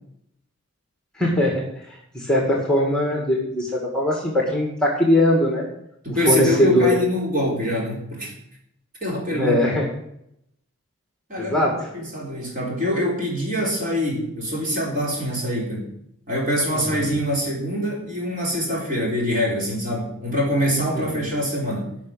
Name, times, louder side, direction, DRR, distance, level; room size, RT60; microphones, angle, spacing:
voice 1, 1.2-1.6 2.1-5.7 6.3-6.9 9.3-9.9 11.4-11.8 16.9-17.0, left 1 dB, 5° left, -1 dB, 2.0 m, -20 dB
voice 2, 6.0-8.3 9.0-9.5 11.3-15.9 16.3-21.9, equal, 40° right, -2 dB, 4.0 m, -24 dB
11.5 x 5.9 x 8.7 m, 0.75 s
head